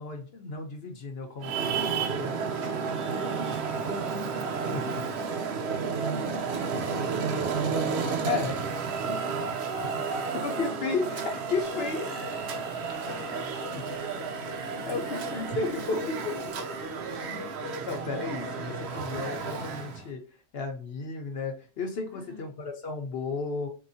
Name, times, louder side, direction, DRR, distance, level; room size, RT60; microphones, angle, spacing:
voice 1, 0.0-2.3 4.7-5.1 8.3-8.6 9.1-9.3 9.8-10.0 10.3-12.1 13.7-14.0 14.9-16.4 17.9-20.2 20.5-23.7, left 4 dB, 65° left, 0.9 m, -33 dB
Traffic noise roadway noise, 1.4-20.1, right 5 dB, 70° right, 0.9 m, -32 dB
voice 2, 3.4-4.9 6.1-7.6 14.9-17.6 22.1-22.5, equal, 55° right, 1.6 m, -45 dB
sound 1, 11.6-19.7, left 4 dB, 35° left, 0.4 m, -44 dB
3.7 x 2.4 x 2.6 m
omnidirectional pair, 1.2 m